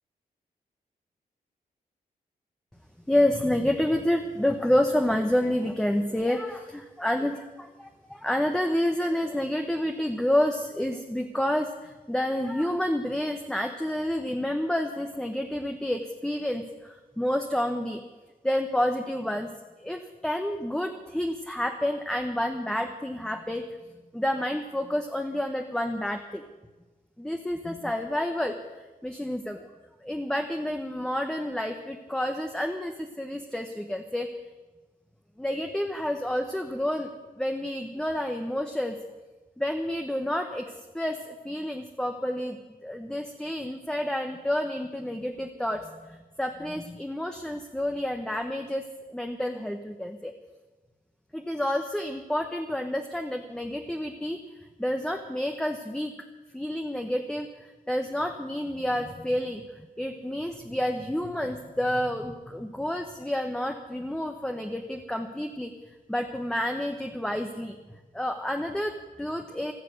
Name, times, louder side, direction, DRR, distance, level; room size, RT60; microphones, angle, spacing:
voice 1, 3.1-18.0 18.4-19.5 19.8-23.6 24.1-26.4 27.2-29.6 30.0-34.3 35.4-37.1 37.4-39.0 39.6-48.8 49.1-50.3 51.3-54.4 54.8-56.1 56.5-65.7 66.1-67.8 68.1-69.7, left 1 dB, 5° left, 4 dB, 1.0 m, -29 dB
16.0 x 13.5 x 6.6 m, 1.2 s
wide cardioid pair, 125°, 15 cm